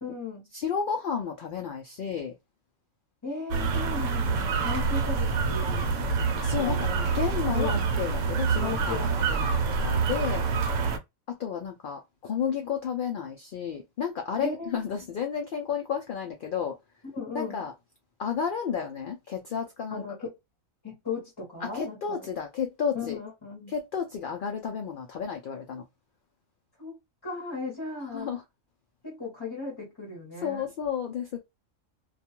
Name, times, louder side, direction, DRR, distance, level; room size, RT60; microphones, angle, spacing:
voice 1, 0.0-0.5 3.2-6.0 6.5-7.1 7.5-7.9 8.6-9.5 14.4-14.8 17.1-17.6 19.9-20.3 20.8-22.3 22.9-23.7 26.8-28.3 29.0-30.7, left 4 dB, 20° left, 0.7 m, -37 dB
voice 2, 0.5-2.3 6.4-6.9 7.1-10.4 11.3-16.8 17.3-17.7 18.2-20.0 21.6-23.2 23.7-25.8 28.1-28.4 30.4-31.4, left 7 dB, 75° left, 0.4 m, -32 dB
sound 1, 3.5-11.0, right 5 dB, 70° right, 0.9 m, -26 dB
2.4 x 2.3 x 2.8 m
omnidirectional pair, 1.4 m